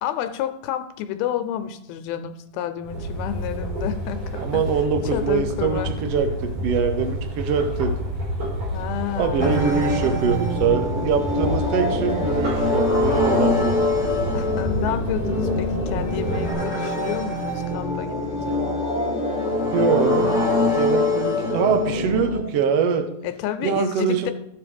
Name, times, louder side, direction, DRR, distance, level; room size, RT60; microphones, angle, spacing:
voice 1, 0.0-4.6 5.1-5.9 8.7-9.7 14.3-18.6 23.2-24.3, left 11 dB, 80° left, 9 dB, 2.5 m, -30 dB
sound 1, 2.8-16.5, equal, 55° right, 5.2 m, -29 dB
voice 2, 4.4-7.9 9.2-13.7 19.7-20.3 20.7-23.1 23.6-24.3, right 6 dB, 75° right, 6 dB, 1.4 m, -23 dB
sound 2, 9.4-22.4, left 2 dB, 25° left, 1.0 m, -24 dB
15.0 x 5.3 x 5.1 m, 0.80 s
omnidirectional pair, 4.4 m